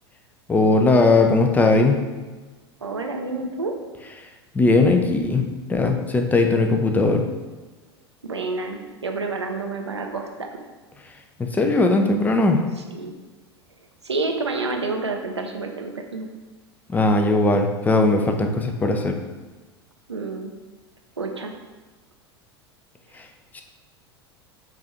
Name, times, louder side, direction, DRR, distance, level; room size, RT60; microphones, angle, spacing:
voice 1, 0.5-2.0 4.5-5.4 5.7-7.2 11.5-12.6 16.9-19.1 23.5-23.6, left 2 dB, 10° left, 4 dB, 0.5 m, -18 dB
voice 2, 2.8-3.7 8.2-10.6 12.9-13.1 14.0-16.3 20.1-20.5 21.2-21.5, right 3 dB, 85° right, 3 dB, 0.5 m, -29 dB
4.7 x 2.5 x 4.3 m, 1.3 s
figure-of-eight pair, 80°, 14 cm